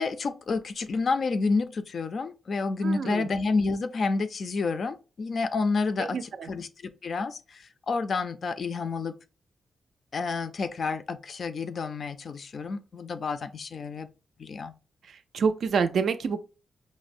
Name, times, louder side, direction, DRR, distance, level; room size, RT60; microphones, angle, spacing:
voice 1, 0.0-9.2 10.1-14.1 14.4-14.7, left 4 dB, 45° left, 0.3 m, -29 dB
voice 2, 2.8-3.3 6.0-6.5 15.1-16.4, right 5 dB, 60° right, 0.3 m, -28 dB
5.1 x 2.0 x 2.4 m
wide cardioid pair, 180°, 0 cm